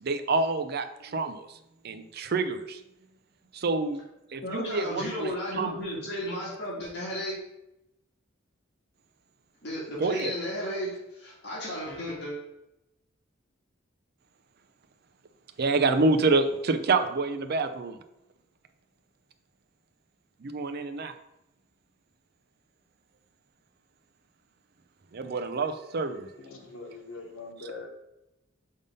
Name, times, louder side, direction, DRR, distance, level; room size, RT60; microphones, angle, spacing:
voice 1, 0.0-1.6 1.8-2.8 3.5-4.0 4.3-5.7 10.0-10.3 15.6-18.0 20.4-21.1 25.1-26.3, right 3 dB, 50° right, 7 dB, 0.5 m, -27 dB
voice 2, 4.4-7.4 9.6-12.3, equal, 55° left, -5 dB, 2.0 m, -34 dB
voice 3, 26.4-27.9, left 3 dB, 85° left, 2 dB, 1.2 m, -42 dB
5.3 x 3.5 x 5.3 m, 0.87 s
head